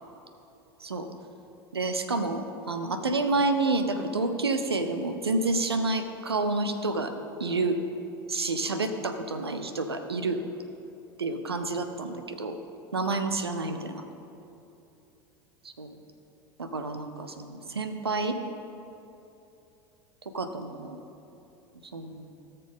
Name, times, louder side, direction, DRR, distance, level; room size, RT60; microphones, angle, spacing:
voice 1, 1.7-7.1 7.4-7.8 8.3-10.4 11.2-12.6 12.9-14.0 15.6-15.9 16.6-18.4 20.3-21.0 21.9-22.3, right 3 dB, 85° right, 8 dB, 0.6 m, -29 dB
17.0 x 6.7 x 3.6 m, 2.9 s
figure-of-eight pair, 80°, 13 cm